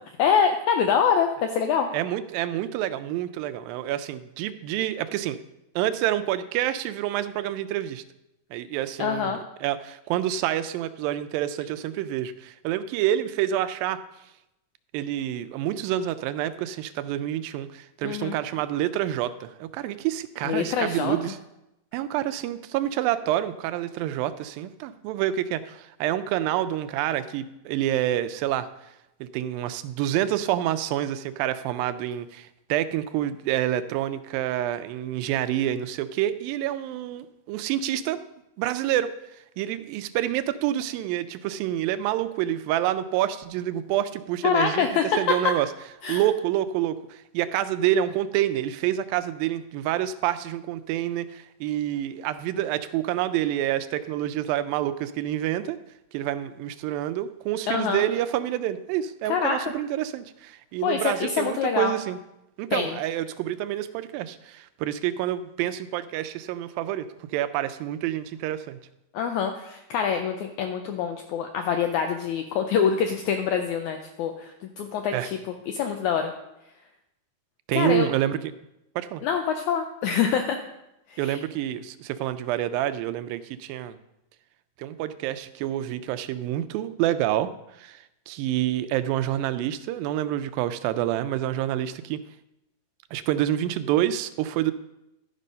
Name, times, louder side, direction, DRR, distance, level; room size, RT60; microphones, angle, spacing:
voice 1, 0.2-1.9 9.0-9.4 18.0-18.4 20.4-21.2 44.4-45.3 46.0-46.2 57.7-58.0 59.3-59.7 60.8-61.9 62.7-63.0 69.1-74.5 74.8-75.4 75.7-76.3 77.7-78.1 79.2-80.6 81.1-81.4, left 7 dB, 80° left, 5 dB, 1.7 m, -25 dB
voice 2, 1.9-5.4 5.8-8.0 8.5-14.0 14.9-21.4 21.9-28.7 29.2-38.2 38.6-39.1 39.6-44.9 45.2-45.7 46.1-55.8 56.1-62.2 62.6-67.1 67.3-68.8 75.1-75.3 77.7-78.4 79.0-79.2 81.2-84.0 84.8-87.5 87.8-92.2 93.1-94.7, right 12 dB, 90° right, 11 dB, 2.3 m, -27 dB
12.0 x 5.5 x 5.2 m, 0.88 s
omnidirectional pair, 4.0 m